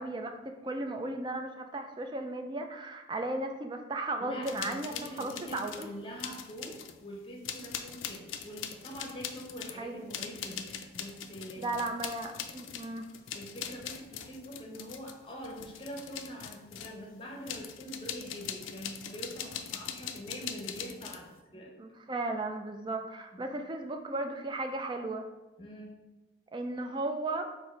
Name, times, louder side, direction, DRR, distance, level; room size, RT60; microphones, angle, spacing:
voice 1, 0.0-5.9 9.8-10.1 11.6-13.1 21.8-25.3 26.5-27.5, right 2 dB, 25° right, 5 dB, 0.3 m, -35 dB
voice 2, 4.2-11.8 13.3-21.7 23.3-23.5 25.6-25.9, equal, 25° left, 0 dB, 0.7 m, -44 dB
sound 1, 4.4-5.9 6.2-7.0 7.4-17.0 17.5-21.3, left 8 dB, 75° left, 0.4 m, -41 dB
4.5 x 2.6 x 4.4 m, 1.1 s
head